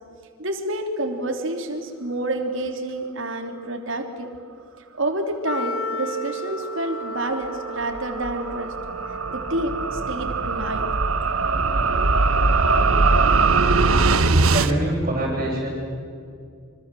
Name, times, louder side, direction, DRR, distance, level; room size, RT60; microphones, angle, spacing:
voice 1, 0.4-4.3 5.0-8.7 9.3-10.9, right 1 dB, 60° right, 5 dB, 3.3 m, -28 dB
Wind instrument woodwind instrument, 5.4-10.5, equal, 75° left, 2.1 m, -34 dB
sound 1, 6.9-14.7, right 3 dB, 75° right, 1.4 m, -21 dB
voice 2, 14.2-15.7, right 1 dB, 35° right, -6 dB, 6.6 m, -25 dB
27.5 x 26.0 x 7.8 m, 2.3 s
head